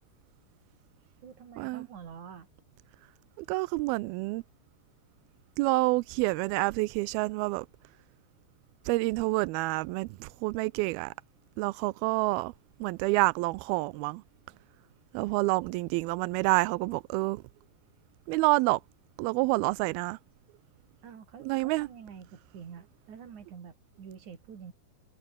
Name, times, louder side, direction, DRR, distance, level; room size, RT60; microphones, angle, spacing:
voice 1, 1.2-2.5 21.0-24.7, right 7 dB, 45° right, 4.2 m, -47 dB
voice 2, 3.5-4.4 5.6-7.7 8.9-11.1 11.6-12.5 12.8-14.2 15.1-17.4 18.3-18.8 19.2-20.2 21.5-21.9, right 22 dB, 85° right, 2.2 m, -28 dB
omnidirectional pair, 4.9 m